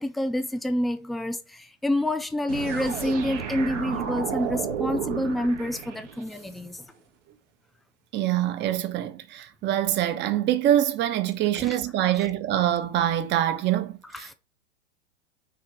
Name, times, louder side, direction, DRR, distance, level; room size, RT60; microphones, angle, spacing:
voice 1, 0.0-6.8 11.6-11.7 14.3-14.4, left 1 dB, ahead, 0.3 m, -28 dB
sound 1, 2.5-6.4, right 7 dB, 75° right, 2.4 m, -32 dB
voice 2, 8.1-14.3, right 12 dB, 30° right, 1.2 m, -25 dB
6.6 x 4.5 x 6.3 m
hypercardioid pair, 115°, 37 cm